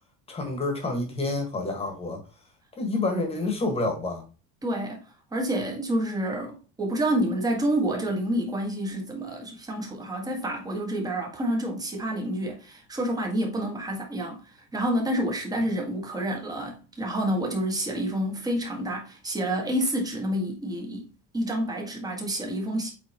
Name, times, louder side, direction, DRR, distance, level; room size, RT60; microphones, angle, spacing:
voice 1, 0.3-2.2 2.8-4.2, left 2 dB, 20° left, 1.7 m, -28 dB
voice 2, 4.6-5.1 5.3-21.1 21.3-22.9, right 1 dB, 10° right, 1.6 m, -28 dB
8.4 x 3.8 x 3.0 m
cardioid pair, 170°, 33 cm